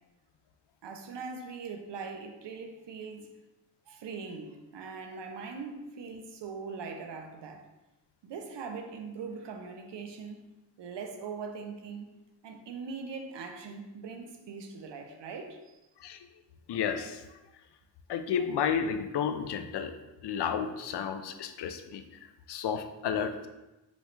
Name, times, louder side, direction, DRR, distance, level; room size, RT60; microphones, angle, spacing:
voice 1, 0.8-3.3 3.9-7.6 8.2-10.5 10.8-12.1 12.4-15.8, right 5 dB, 65° right, 5 dB, 0.7 m, -41 dB
voice 2, 16.7-17.2 18.1-19.9 20.2-23.5, left 7 dB, 65° left, 8 dB, 0.5 m, -32 dB
5.3 x 3.1 x 3.2 m, 1.0 s
wide cardioid pair, 135°, 45 cm